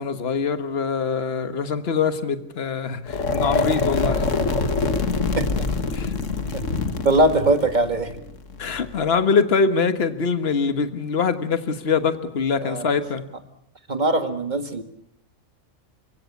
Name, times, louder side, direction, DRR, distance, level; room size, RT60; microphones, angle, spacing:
voice 1, 0.0-4.3 5.9-6.1 8.6-13.3, left 5 dB, 50° left, 10 dB, 1.6 m, -23 dB
sound 1, 3.1-9.0, left 3 dB, 65° left, 1.9 m, -25 dB
voice 2, 5.4-5.7 6.5-6.7 7.0-8.1 12.6-12.8 13.9-14.8, right 2 dB, 35° right, 7 dB, 2.0 m, -21 dB
29.0 x 16.5 x 8.3 m, 0.75 s
omnidirectional pair, 1.4 m